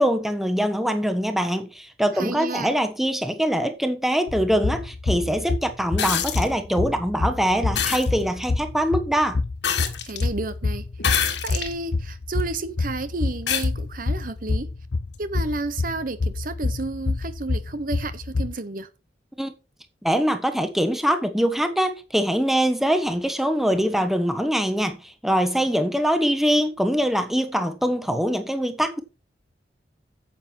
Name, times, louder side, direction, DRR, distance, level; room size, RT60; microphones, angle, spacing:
voice 1, 0.0-9.4 19.4-19.5 20.0-29.0, equal, ahead, 1.2 m, -23 dB
voice 2, 2.1-2.7 10.1-10.9 11.4-14.7 15.2-18.9, right 3 dB, 50° right, 0.9 m, -31 dB
sound 1, 4.3-18.5, left 3 dB, 55° left, 0.5 m, -27 dB
sound 2, 6.0-6.5 7.8-8.1 9.6-10.3 11.0-11.7 12.4-12.5 13.5-13.7 15.1-15.2, left 8 dB, 70° left, 1.7 m, -25 dB
9.7 x 7.7 x 4.5 m
head